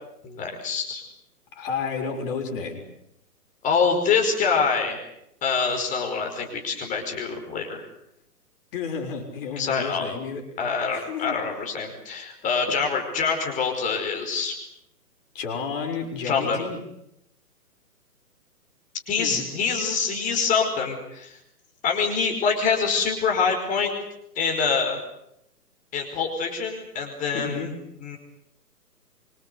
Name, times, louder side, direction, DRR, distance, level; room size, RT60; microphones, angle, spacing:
voice 1, 0.2-1.0 3.6-5.0 5.4-7.9 9.6-10.1 10.6-14.6 16.2-16.6 19.1-21.4 21.8-23.9 24.4-25.0 25.9-27.7 28.0-28.2, left 5 dB, 15° left, 3 dB, 5.3 m, -25 dB
voice 2, 1.5-2.8 8.7-10.5 10.9-11.4 15.3-16.8 19.2-19.5 27.3-27.7, left 6 dB, 35° left, 2 dB, 6.5 m, -31 dB
27.0 x 25.5 x 8.2 m, 0.80 s
hypercardioid pair, 145°, 48 cm